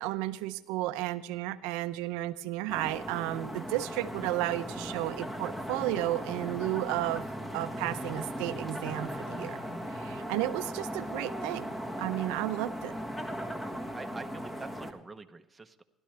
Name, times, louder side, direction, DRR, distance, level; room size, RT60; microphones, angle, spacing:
voice 1, 0.0-7.2 7.5-9.6 9.9-11.7 12.0-12.9, right 16 dB, 90° right, 11 dB, 0.6 m, -33 dB
sound 1, 2.7-14.9, equal, 15° left, 1.5 m, -38 dB
voice 2, 13.9-15.8, right 3 dB, 15° right, 6 dB, 0.9 m, -45 dB
16.0 x 12.0 x 3.3 m, 0.97 s
cardioid pair, 120°, 0 cm